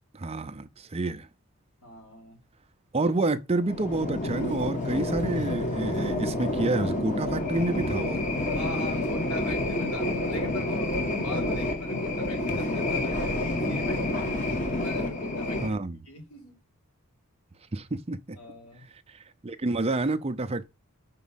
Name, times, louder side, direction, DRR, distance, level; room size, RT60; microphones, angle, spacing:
voice 1, 0.1-1.3 2.9-8.2 15.6-16.0 17.7-18.4 19.1-20.7, right 2 dB, 25° right, 0.5 m, -29 dB
voice 2, 1.8-2.4 8.1-14.3 14.7-15.8 16.1-16.5 18.3-18.8, left 2 dB, 80° left, 4.6 m, -40 dB
sound 1, 3.6-15.7, left 1 dB, 35° left, 1.6 m, -29 dB
6.1 x 4.5 x 5.7 m
head